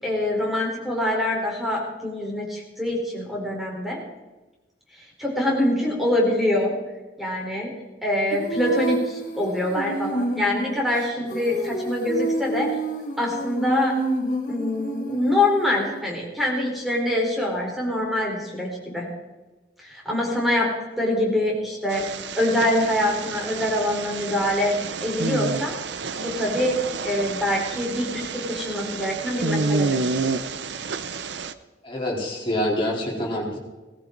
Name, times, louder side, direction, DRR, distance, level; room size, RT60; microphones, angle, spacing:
voice 1, 0.0-4.0 5.2-6.7 7.2-7.7 8.0-12.7 13.2-13.9 14.5-19.1 19.8-20.7 21.0-22.0 22.4-24.7 25.0-25.7 26.2-26.8 27.0-30.2, left 1 dB, ahead, -3 dB, 4.1 m, -24 dB
Female singing, 8.3-16.0, right 2 dB, 50° left, 2.3 m, -29 dB
sound 1, 21.9-31.5, right 4 dB, 75° right, 0.7 m, -29 dB
voice 2, 31.8-33.6, left 1 dB, 30° left, -3 dB, 3.8 m, -26 dB
18.0 x 14.5 x 3.9 m, 1.1 s
head